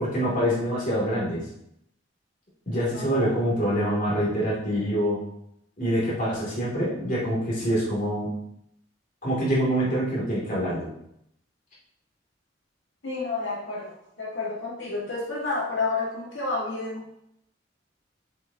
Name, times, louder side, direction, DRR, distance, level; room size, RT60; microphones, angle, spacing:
voice 1, 0.0-1.4 2.7-5.2 5.8-8.3 9.2-10.9, equal, 45° left, -5 dB, 2.5 m, -25 dB
voice 2, 2.9-3.3 13.0-17.0, left 3 dB, 90° left, -5 dB, 1.8 m, -30 dB
7.2 x 6.4 x 2.8 m, 0.77 s
head